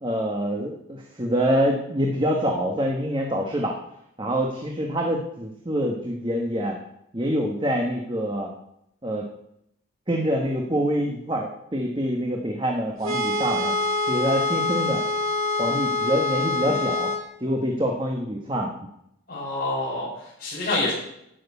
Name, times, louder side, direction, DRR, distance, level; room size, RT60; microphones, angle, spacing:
voice 1, 0.0-3.7 4.2-6.8 7.1-8.5 9.0-9.3 10.1-13.7 14.1-15.0 15.6-17.1 17.4-18.7, equal, 25° right, 1 dB, 1.3 m, -25 dB
sound 1, 13.0-17.2, left 2 dB, 90° right, 2.5 m, -25 dB
voice 2, 19.3-20.9, left 2 dB, 45° left, -9 dB, 5.3 m, -27 dB
11.5 x 7.8 x 8.2 m, 0.78 s
head